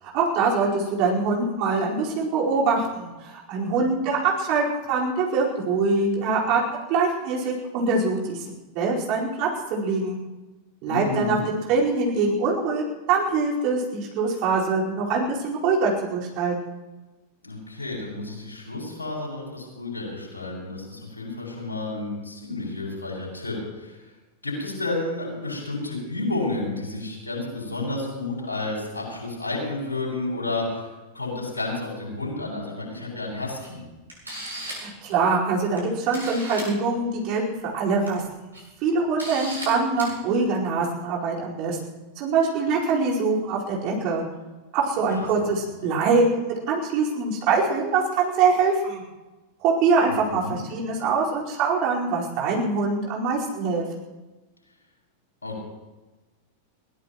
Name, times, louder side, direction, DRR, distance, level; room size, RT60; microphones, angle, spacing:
voice 1, 0.0-6.6 6.9-8.4 8.7-10.2 10.8-16.5 34.6-37.4 37.7-38.5 38.8-41.8 42.2-44.2 44.7-46.2 46.7-49.0 49.6-53.9, right 4 dB, 40° right, -4 dB, 4.8 m, -24 dB
voice 2, 10.9-11.4 17.4-24.0 24.4-33.8 45.1-45.5 45.8-45.9 50.0-50.6 55.4-55.6, left 2 dB, 75° left, -2 dB, 7.2 m, -31 dB
Camera, 33.6-33.7 34.1-34.9 35.8-35.9 36.1-36.7 37.8-38.1 38.5-38.6 39.2-39.7 40.0-40.1, right 1 dB, 80° right, 7.3 m, -35 dB
22.5 x 17.5 x 3.1 m, 1.1 s
figure-of-eight pair, 90°, 0 cm